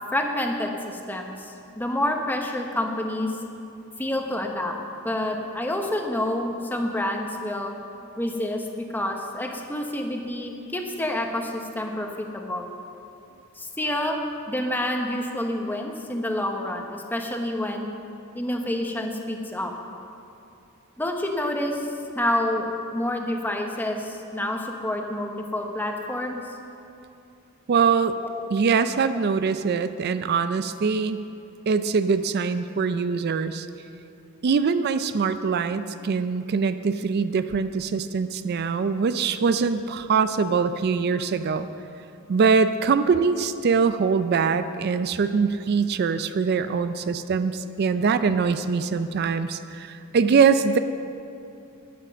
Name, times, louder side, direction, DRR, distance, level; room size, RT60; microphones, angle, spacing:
voice 1, 0.1-3.3 4.0-4.7 5.0-7.7 8.2-12.1 12.3-12.7 13.6-14.2 14.5-17.9 18.3-19.7 21.0-21.9 22.1-22.7 22.9-26.4 28.2-28.5, left 1 dB, 10° left, 2 dB, 0.9 m, -28 dB
voice 2, 27.7-28.2 28.5-31.2 31.7-33.7 34.4-41.7 42.3-50.8, right 5 dB, 50° right, 11 dB, 0.4 m, -23 dB
9.9 x 9.2 x 6.5 m, 2.7 s
head